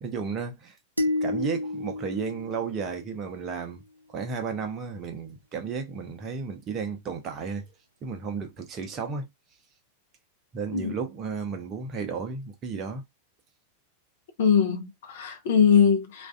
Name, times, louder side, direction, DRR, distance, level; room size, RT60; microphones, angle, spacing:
voice 1, 0.0-0.8 1.2-3.8 4.1-7.7 8.0-9.3 10.5-13.0, right 5 dB, 30° right, 0.7 m, -33 dB
sound 1, 1.0-3.4, left 2 dB, 80° right, 0.3 m, -31 dB
voice 2, 14.4-16.3, left 7 dB, 55° left, 0.6 m, -22 dB
2.4 x 2.3 x 2.2 m
figure-of-eight pair, 90°, 0 cm